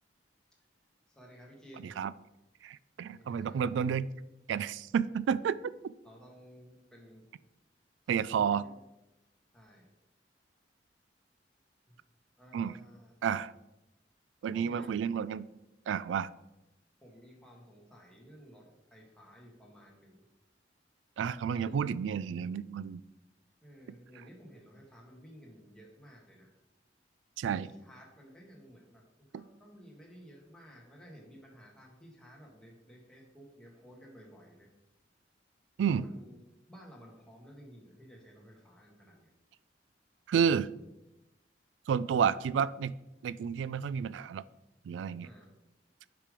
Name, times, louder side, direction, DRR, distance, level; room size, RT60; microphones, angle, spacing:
voice 1, 1.1-2.0 3.1-3.7 6.0-7.2 8.0-8.7 9.5-9.9 12.4-13.1 14.5-14.9 17.0-20.3 21.4-21.9 23.6-26.5 27.4-29.0 29.3-34.7 35.8-36.4 36.7-39.3 45.2-45.5, equal, 5° left, -2 dB, 1.6 m, -54 dB
voice 2, 1.8-2.1 2.6-4.1 4.5-5.9 8.1-8.6 12.5-12.8 13.2-13.5 14.4-15.5 15.9-16.3 21.2-23.0 27.4-27.7 29.3-29.4 35.8-36.1 40.3-40.7 41.9-42.9 43.2-44.4 44.8-45.3, right 7 dB, 90° right, 17 dB, 0.3 m, -31 dB
7.4 x 5.1 x 5.1 m, 0.97 s
head